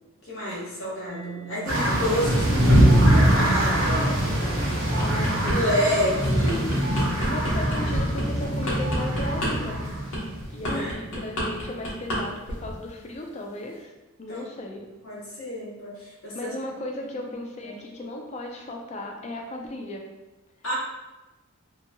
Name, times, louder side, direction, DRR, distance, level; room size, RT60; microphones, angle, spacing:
voice 1, 0.2-4.2 5.5-6.8 10.7-10.9 14.3-14.4 15.0-16.5 17.6-17.8 20.6-20.7, equal, 70° left, -5 dB, 0.9 m, -29 dB
Mallet percussion, 1.1-8.6, right 10 dB, 85° right, 1.0 m, -46 dB
sound 1, 1.7-10.7, equal, 60° right, 0.7 m, -22 dB
sound 2, 4.8-5.6 6.0-12.2 12.5-12.8, equal, 90° left, 1.0 m, -29 dB
voice 2, 4.9-5.7 7.3-9.8 10.5-13.9 14.2-14.9 16.3-20.1, left 1 dB, 30° left, 1 dB, 0.3 m, -36 dB
2.8 x 2.7 x 2.2 m, 1.1 s
head